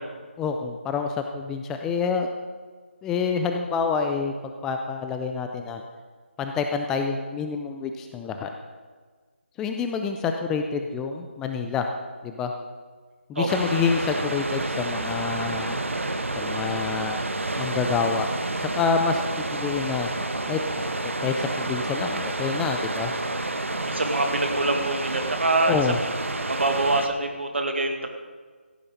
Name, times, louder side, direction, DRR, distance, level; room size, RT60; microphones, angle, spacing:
voice 1, 0.4-2.3 3.0-5.8 6.4-8.5 9.6-11.9 12.2-12.5 13.3-15.8 16.4-17.2 17.6-18.3 18.6-19.2 19.5-20.1 20.5-20.6 21.0-23.1 25.6-26.0, left 5 dB, 5° left, 5 dB, 0.4 m, -27 dB
sound 1, 13.5-27.1, right 2 dB, 85° right, 1.2 m, -29 dB
voice 2, 23.8-26.1 26.5-28.1, right 2 dB, 65° right, 4 dB, 2.1 m, -25 dB
15.0 x 8.8 x 5.3 m, 1.5 s
figure-of-eight pair, 160°, 7 cm